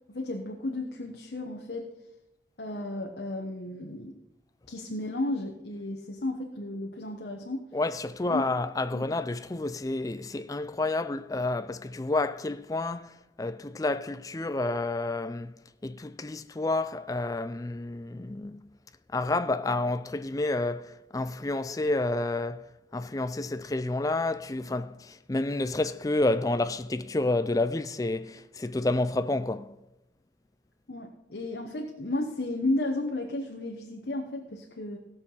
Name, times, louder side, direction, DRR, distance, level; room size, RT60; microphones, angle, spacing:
voice 1, 0.1-1.9 2.6-4.2 4.7-7.7 8.3-8.4 8.9-9.1 30.9-35.0, left 2 dB, 55° left, 1.0 m, -33 dB
voice 2, 7.7-15.6 15.8-18.6 19.1-29.8, left 2 dB, 20° left, 0.4 m, -30 dB
16.5 x 6.7 x 5.6 m
head